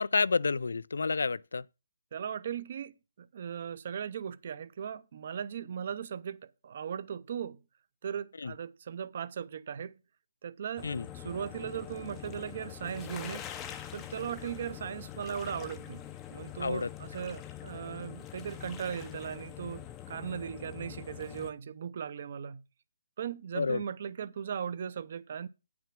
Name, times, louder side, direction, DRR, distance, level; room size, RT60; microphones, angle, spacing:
voice 1, 0.0-1.6 8.4-8.5 10.8-11.0 16.6-16.9 23.5-23.8, left 4 dB, 85° left, 0.4 m, -29 dB
voice 2, 2.1-7.6 8.0-10.0 10.4-13.5 13.9-22.6 23.2-25.5, right 8 dB, 35° right, 0.5 m, -38 dB
sound 1, 10.8-21.5, left 11 dB, 10° left, 0.5 m, -44 dB
8.8 x 6.0 x 6.0 m
hypercardioid pair, 175°, 0 cm